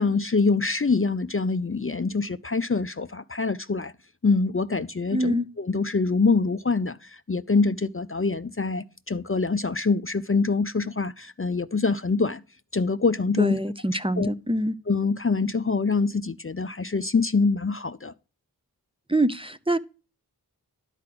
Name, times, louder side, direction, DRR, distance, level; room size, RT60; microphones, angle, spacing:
voice 1, 0.0-3.9 4.2-12.4 12.7-13.6 14.2-14.3 14.9-18.1, left 4 dB, 35° left, 0.6 m, -25 dB
voice 2, 5.1-5.5 13.4-14.7 19.1-19.8, right 1 dB, 15° right, 0.7 m, -24 dB
12.0 x 4.8 x 6.0 m
wide cardioid pair, 40°, 37 cm